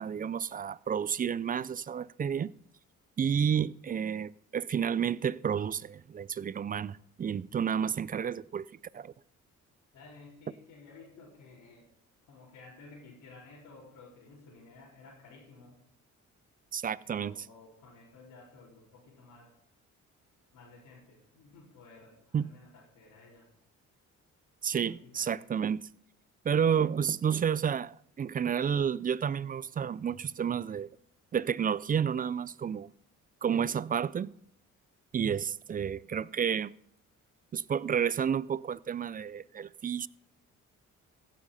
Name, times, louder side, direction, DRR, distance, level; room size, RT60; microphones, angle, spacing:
voice 1, 0.0-2.5 3.2-9.1 16.7-17.4 22.3-22.5 24.6-25.9 26.4-30.9 31.3-32.9 33.4-34.4 35.1-36.7 37.5-40.1, right 7 dB, 30° right, 0.4 m, -31 dB
voice 2, 9.9-11.9 12.3-15.8 17.0-19.5 20.5-23.5 24.7-25.5, left 3 dB, 90° left, 4.1 m, -54 dB
16.0 x 7.4 x 5.5 m
cardioid pair, 90°, 30 cm